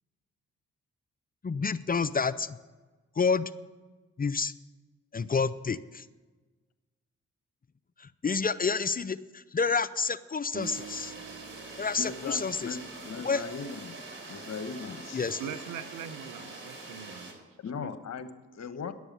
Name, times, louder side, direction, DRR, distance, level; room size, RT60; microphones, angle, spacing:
voice 1, 1.4-2.5 3.2-3.5 4.2-4.5 5.1-6.0 8.0-11.1 11.8-12.8 13.2-13.5 15.1-15.4, left 5 dB, 25° left, 16 dB, 0.5 m, -29 dB
sound 1, 10.5-13.8, right 6 dB, 20° right, 1.0 m, -47 dB
sound 2, 10.6-17.3, right 2 dB, 35° right, 3.9 m, -44 dB
voice 2, 12.0-14.0 14.3-15.2 17.6-18.9, left 5 dB, 55° left, 10 dB, 1.1 m, -38 dB
voice 3, 15.4-17.3 17.7-17.9, right 8 dB, 75° right, 11 dB, 0.9 m, -41 dB
11.0 x 7.1 x 9.4 m, 1.3 s
supercardioid pair, 50°, 32 cm